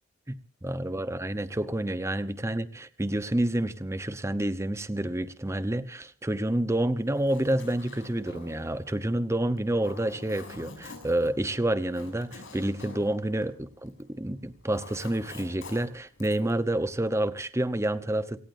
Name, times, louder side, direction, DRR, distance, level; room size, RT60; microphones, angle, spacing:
voice 1, 0.3-18.4, right 1 dB, 15° right, 13 dB, 0.9 m, -29 dB
Zipper (clothing), 7.0-14.1 14.4-16.6, left 3 dB, 65° left, 6.4 m, -47 dB
27.5 x 18.0 x 2.7 m, 0.38 s
head